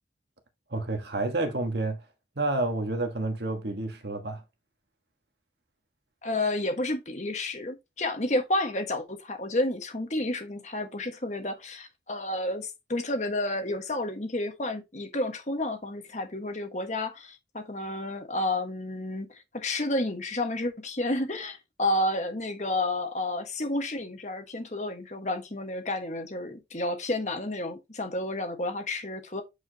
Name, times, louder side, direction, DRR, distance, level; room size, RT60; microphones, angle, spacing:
voice 1, 0.7-2.0 2.4-4.4, right 2 dB, 65° right, 1.4 m, -29 dB
voice 2, 6.2-19.3 19.5-29.4, left 1 dB, 40° left, 1.5 m, -31 dB
8.5 x 4.9 x 2.8 m
head